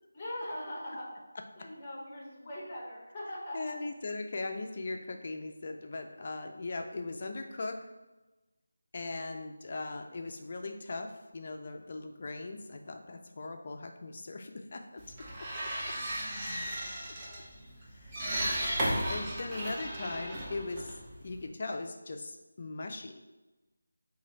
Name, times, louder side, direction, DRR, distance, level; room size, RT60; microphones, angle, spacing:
voice 1, 0.1-1.2 1.6-3.8 15.8-17.5 18.2-18.6, left 1 dB, 25° left, -3 dB, 0.9 m, -43 dB
voice 2, 3.5-7.8 8.9-15.0 15.4-15.5 17.9-18.3 18.8-23.1, left 3 dB, 45° left, 4 dB, 0.4 m, -39 dB
sound 1, 15.0-21.5, right 1 dB, 15° right, 0.6 m, -35 dB
3.1 x 2.5 x 3.8 m, 1.1 s
figure-of-eight pair, 165°, 0 cm